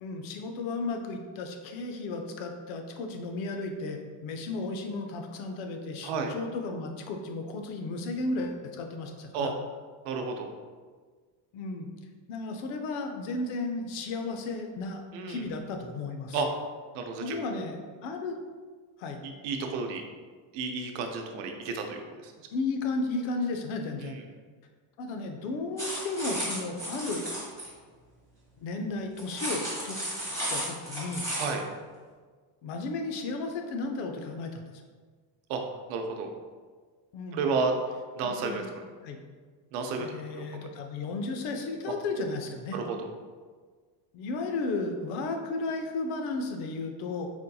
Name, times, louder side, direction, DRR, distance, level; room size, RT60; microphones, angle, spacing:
voice 1, 0.0-9.5 11.5-11.9 12.3-16.4 17.2-18.4 19.0-19.2 21.7-21.8 22.5-24.2 25.0-27.2 28.6-30.0 30.5-31.3 32.6-34.7 37.1-37.5 38.4-38.7 39.0-39.2 40.0-42.8 44.1-47.3, left 3 dB, 70° left, 4 dB, 0.6 m, -34 dB
voice 2, 10.0-10.5 15.1-15.4 16.3-16.5 16.9-17.7 19.2-20.0 20.5-22.3 24.0-24.2 31.3-31.6 35.5-35.6 35.9-36.3 37.3-37.7 38.2-38.8 39.7-40.1 40.3-40.6 42.7-43.0, right 4 dB, 85° right, 3 dB, 0.6 m, -32 dB
sound 1, 25.8-27.7 29.2-31.5, equal, 5° left, 0.9 m, -34 dB
4.3 x 2.7 x 2.2 m, 1.5 s
cardioid pair, 155°, 49 cm